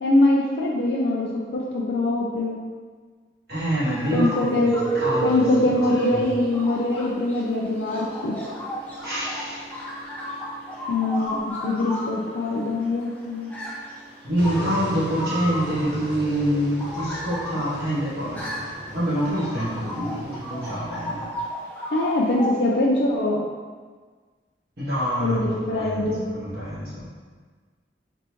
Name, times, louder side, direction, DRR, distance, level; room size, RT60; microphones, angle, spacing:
voice 1, 0.0-2.6 4.1-4.7 5.2-8.3 10.9-11.4 11.6-13.5 21.9-23.4 25.2-26.3, left 2 dB, 70° left, -4 dB, 0.4 m, -23 dB
voice 2, 3.5-6.2 9.0-9.6 14.2-21.3 24.8-27.1, equal, 60° right, -10 dB, 1.5 m, -26 dB
sound 1, 3.8-22.5, left 1 dB, 10° left, 0.5 m, -35 dB
sound 2, 4.4-16.0 20.2-20.3, right 4 dB, 10° right, 0.9 m, -34 dB
sound 3, 14.4-20.7, equal, 85° right, 0.7 m, -37 dB
3.9 x 3.5 x 3.0 m, 1.5 s
head